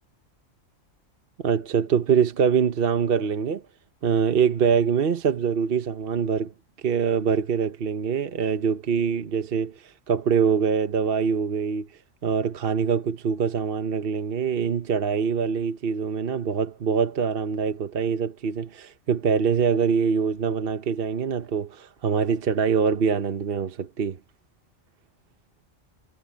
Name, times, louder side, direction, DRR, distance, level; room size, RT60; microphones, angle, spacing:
voice 1, 1.4-3.6 4.0-6.5 6.8-11.9 12.2-24.2, right 6 dB, 50° right, 1.0 m, -24 dB
omnidirectional pair, 1.3 m